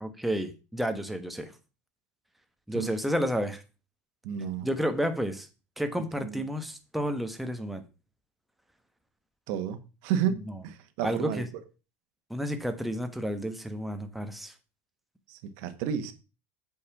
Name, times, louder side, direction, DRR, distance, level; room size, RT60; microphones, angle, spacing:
voice 1, 0.0-1.5 2.7-3.6 4.6-5.5 5.8-7.8 11.0-11.5 12.3-14.5, equal, ahead, 1.2 m, -31 dB
voice 2, 4.2-4.7 6.0-6.4 9.5-11.6 15.3-16.1, right 9 dB, 65° right, 1.4 m, -32 dB
8.0 x 5.5 x 5.9 m
supercardioid pair, 140°, 7 cm